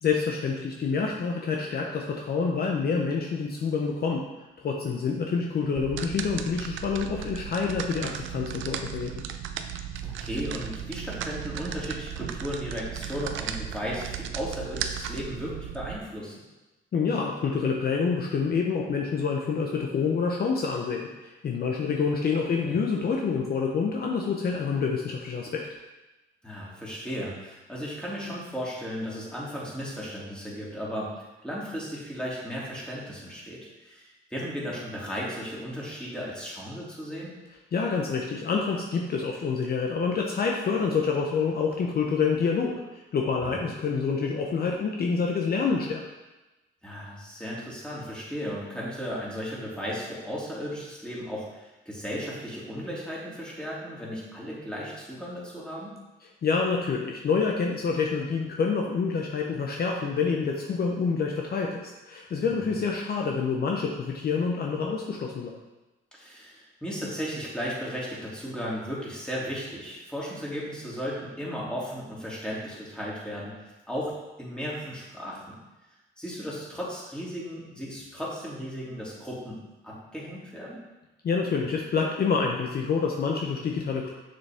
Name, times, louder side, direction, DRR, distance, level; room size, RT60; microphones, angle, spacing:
voice 1, 0.0-4.3 4.6-9.2 16.9-25.7 37.7-46.0 56.4-65.6 81.2-84.1, left 5 dB, 50° left, 0 dB, 0.9 m, -27 dB
sound 1, 5.8-16.0, right 9 dB, 75° right, 0.6 m, -36 dB
voice 2, 10.0-16.4 26.4-37.4 43.4-43.5 46.8-56.0 62.5-62.8 66.1-75.6 76.2-80.8, equal, 5° left, -6 dB, 2.7 m, -35 dB
6.8 x 6.5 x 3.6 m, 1.1 s
cardioid pair, 90°, 20 cm